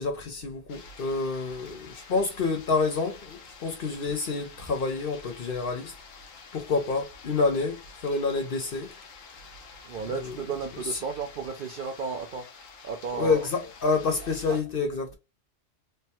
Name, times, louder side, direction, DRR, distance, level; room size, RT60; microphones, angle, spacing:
voice 1, 0.0-5.9 6.5-8.9 13.1-15.2, left 4 dB, 55° left, 0.7 m, -28 dB
sound 1, 0.7-14.6, left 5 dB, 85° left, 1.2 m, -49 dB
voice 2, 9.8-13.5 14.5-14.6, right 5 dB, 65° right, 0.5 m, -34 dB
3.3 x 2.2 x 2.7 m
omnidirectional pair, 1.3 m